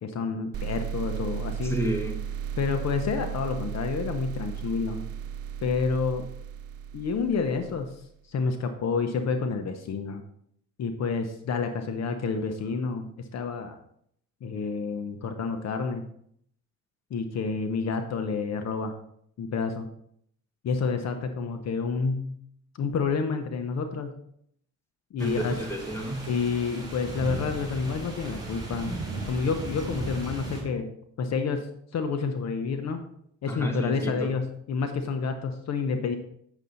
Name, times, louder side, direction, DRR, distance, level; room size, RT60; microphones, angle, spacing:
voice 1, 0.0-1.8 2.6-5.0 5.6-6.2 6.9-8.0 8.3-10.2 10.8-13.8 14.4-16.0 17.1-18.9 19.4-19.9 20.6-22.4 22.8-24.1 25.1-25.6 26.3-29.0 29.3-30.9 31.2-31.7 31.9-33.0 33.4-36.2, left 5 dB, 60° left, 7 dB, 0.9 m, -29 dB
sound 1, 0.5-8.1, right 9 dB, 50° right, 0.6 m, -35 dB
voice 2, 1.6-2.2 25.2-26.3 33.5-34.3, right 1 dB, 10° left, 2 dB, 1.6 m, -31 dB
sound 2, 25.2-30.6, right 3 dB, 15° right, 4.0 m, -36 dB
8.1 x 6.9 x 4.0 m, 0.69 s
cardioid pair, 90°, 30 cm